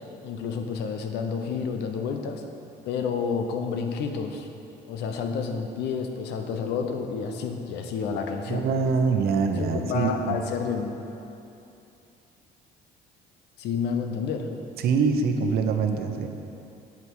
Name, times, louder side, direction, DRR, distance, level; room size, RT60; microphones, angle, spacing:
voice 1, 0.2-2.4 2.9-4.5 4.9-8.7 9.6-10.9 13.6-14.5, left 6 dB, 80° left, 5 dB, 0.9 m, -30 dB
voice 2, 8.5-10.4 14.8-16.3, right 5 dB, 65° right, 5 dB, 0.9 m, -24 dB
8.6 x 8.4 x 4.8 m, 2.8 s
cardioid pair, 110°, 17 cm